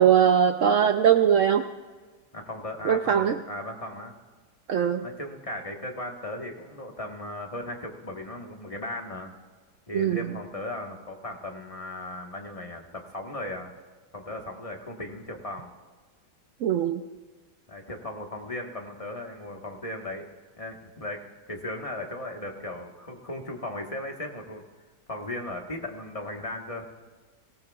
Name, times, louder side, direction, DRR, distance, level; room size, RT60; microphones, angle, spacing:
voice 1, 0.0-1.6 2.8-3.4 4.7-5.0 9.9-10.3 16.6-17.0, right 8 dB, 70° right, 8 dB, 0.7 m, -21 dB
voice 2, 2.3-4.1 5.0-9.3 9.9-13.7 14.1-15.7 17.7-20.3 20.6-21.2 21.5-24.6 25.1-26.8, left 1 dB, 25° left, 2 dB, 1.2 m, -37 dB
19.5 x 17.5 x 2.3 m, 1.4 s
omnidirectional pair, 1.8 m